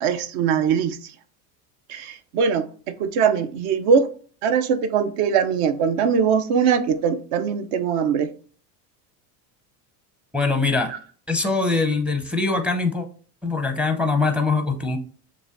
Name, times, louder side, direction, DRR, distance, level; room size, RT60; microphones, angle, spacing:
voice 1, 0.0-1.0 1.9-4.1 4.4-8.3 10.9-11.0, right 6 dB, 55° right, 0.6 m, -21 dB
voice 2, 10.3-10.9 11.3-13.1 13.4-15.0, left 3 dB, ahead, 0.5 m, -22 dB
6.7 x 2.3 x 2.5 m
hypercardioid pair, 85°, 49 cm